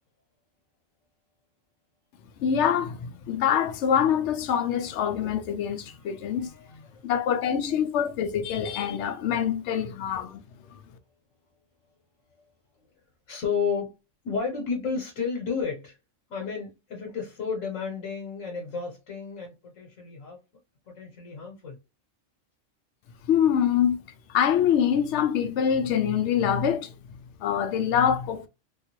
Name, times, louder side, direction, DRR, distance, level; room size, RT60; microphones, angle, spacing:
voice 1, 2.4-6.5 7.0-10.4 23.3-24.0 24.3-26.9 27.4-28.5, left 8 dB, 70° left, 0.8 m, -25 dB
voice 2, 5.9-7.0 13.3-13.9 14.2-16.0 16.3-20.4 20.9-21.8, left 5 dB, 85° left, 1.3 m, -32 dB
3.5 x 2.4 x 2.9 m
omnidirectional pair, 1.3 m